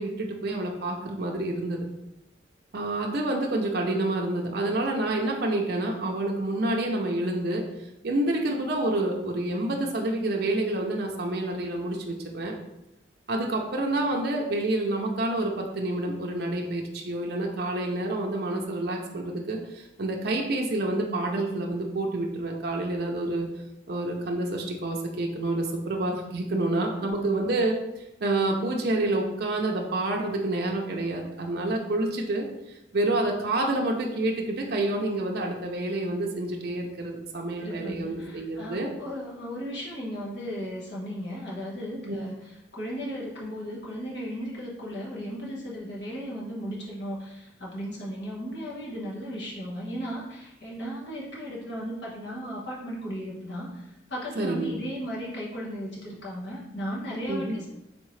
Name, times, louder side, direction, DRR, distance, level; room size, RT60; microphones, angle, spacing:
voice 1, 0.0-1.8 2.7-7.6 8.0-12.5 13.3-23.5 23.9-38.9 42.1-42.2 54.4-54.8 57.3-57.6, right 2 dB, 55° right, 0 dB, 0.5 m, -28 dB
voice 2, 27.0-27.5 37.6-42.4 42.7-57.7, equal, 65° left, -5 dB, 1.1 m, -36 dB
3.6 x 3.5 x 3.1 m, 0.91 s
head